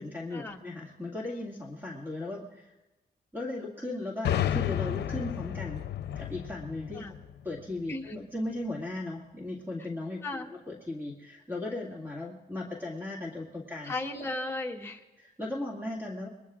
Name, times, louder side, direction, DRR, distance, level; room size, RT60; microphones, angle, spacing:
voice 1, 0.0-2.7 3.3-5.8 6.2-7.1 7.4-13.9 15.2-16.3, left 2 dB, 10° right, -3 dB, 2.1 m, -37 dB
sound 1, 4.2-7.9, left 11 dB, 80° left, 0.6 m, -32 dB
voice 2, 13.8-15.0, left 2 dB, 15° left, 0 dB, 1.4 m, -35 dB
26.5 x 21.0 x 2.5 m, 1.1 s
cardioid pair, 110°, 17 cm